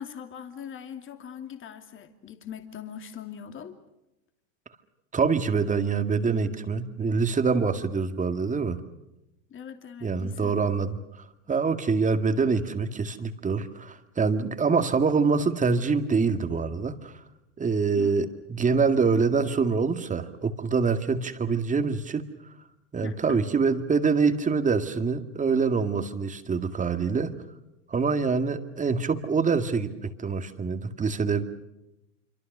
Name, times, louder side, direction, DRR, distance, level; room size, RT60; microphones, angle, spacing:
voice 1, 0.0-3.8 9.5-10.7 17.9-18.3 23.0-23.4, left 8 dB, 30° left, 7 dB, 2.7 m, -41 dB
voice 2, 5.1-8.8 10.0-11.0 11.5-17.1 17.6-22.3 22.9-27.3 27.9-31.4, right 5 dB, 20° right, 8 dB, 2.1 m, -25 dB
27.0 x 25.0 x 6.8 m, 0.91 s
hypercardioid pair, 105°, 41 cm